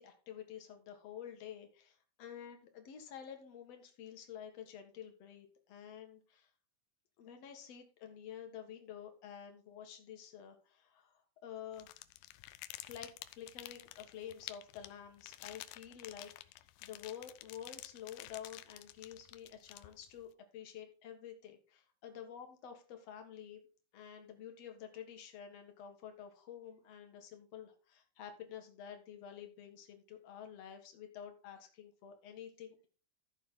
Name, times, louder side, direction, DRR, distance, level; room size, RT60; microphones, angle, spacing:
voice 1, 0.0-6.5 7.2-12.0 12.8-23.6 23.9-32.9, left 9 dB, 55° left, 5 dB, 2.4 m, -50 dB
sound 1, 11.7-20.2, left 16 dB, 90° left, 2.5 m, -51 dB
13.5 x 6.7 x 3.8 m, 0.37 s
omnidirectional pair, 4.1 m